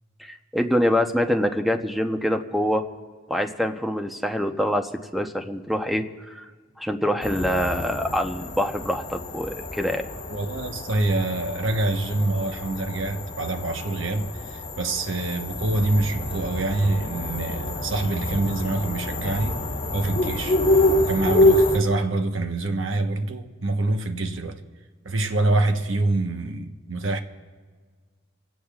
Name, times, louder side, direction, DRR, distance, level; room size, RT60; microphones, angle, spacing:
voice 1, 0.2-2.8 3.3-6.5 6.8-10.0, equal, ahead, 0.8 m, -25 dB
Great Horned Owl, 7.2-21.8, left 1 dB, 40° left, 3.3 m, -26 dB
voice 2, 10.3-19.6 19.9-20.6 21.0-24.6 25.0-27.2, right 2 dB, 80° right, 1.2 m, -26 dB
27.5 x 17.0 x 2.4 m
head